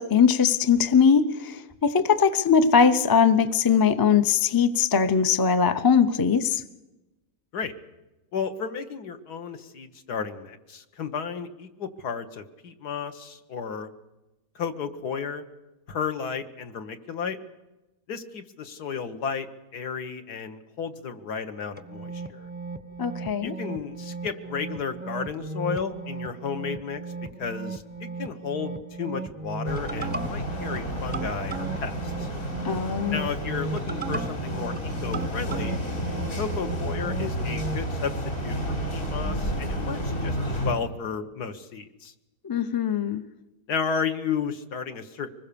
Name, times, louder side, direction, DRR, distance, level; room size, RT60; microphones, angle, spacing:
voice 1, 0.0-6.6 23.0-23.5 32.6-33.3 42.4-43.2, left 6 dB, 30° left, 11 dB, 0.3 m, -21 dB
voice 2, 8.3-13.9 14.6-15.4 15.9-17.4 18.1-19.5 19.7-22.5 23.4-27.0 27.4-32.3 33.1-35.8 36.3-38.2 38.4-42.1 43.7-45.3, left 6 dB, 70° left, 8 dB, 1.9 m, -33 dB
sound 1, 21.8-37.9, right 3 dB, 10° right, 0.7 m, -36 dB
sound 2, 29.6-40.7, equal, 50° left, 4.3 m, -31 dB
24.5 x 20.5 x 7.0 m, 1.0 s
omnidirectional pair, 1.8 m